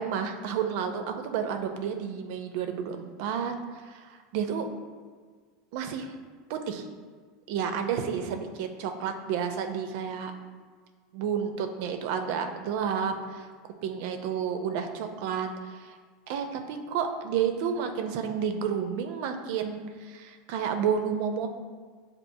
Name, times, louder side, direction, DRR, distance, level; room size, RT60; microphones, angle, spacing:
voice 1, 0.0-4.7 5.7-6.1 6.5-6.9 7.5-10.3 11.1-16.0 16.3-21.5, right 7 dB, 70° right, 6 dB, 0.5 m, -31 dB
7.3 x 2.5 x 2.7 m, 1.5 s
hypercardioid pair, 105°, 0 cm